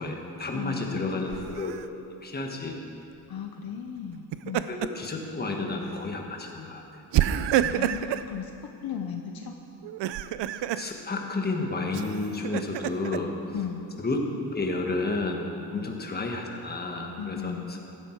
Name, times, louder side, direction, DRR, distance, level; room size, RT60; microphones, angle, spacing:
voice 1, 0.0-1.8 2.2-2.8 4.7-7.0 10.8-13.5 14.0-14.2 14.5-17.5, left 2 dB, 20° left, 1 dB, 1.5 m, -31 dB
voice 2, 0.5-1.6 3.3-4.7 7.7-9.6 13.5-13.9 15.7-15.9 17.2-17.8, left 8 dB, 55° left, 4 dB, 0.9 m, -36 dB
Laughter, 1.3-1.8 4.1-5.1 5.5-5.7 7.1-8.3 9.8-10.9 11.9-13.2, right 11 dB, 80° right, 0.6 m, -28 dB
15.5 x 12.0 x 4.6 m, 2.7 s
cardioid pair, 140°, 42 cm